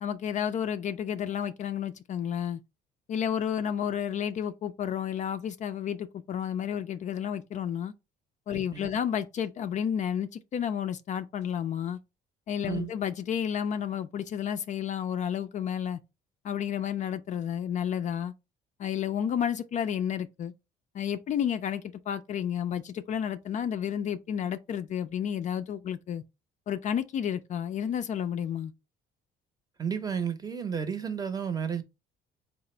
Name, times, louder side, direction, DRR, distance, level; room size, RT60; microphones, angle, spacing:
voice 1, 0.0-2.6 3.1-7.9 8.5-12.0 12.5-16.0 16.4-18.3 18.8-20.5 20.9-26.2 26.7-28.7, left 9 dB, 45° left, 0.4 m, -31 dB
voice 2, 8.5-8.9 12.6-12.9 29.8-31.8, right 7 dB, 20° right, 0.7 m, -32 dB
3.9 x 2.0 x 4.3 m
cardioid pair, 110°, 17 cm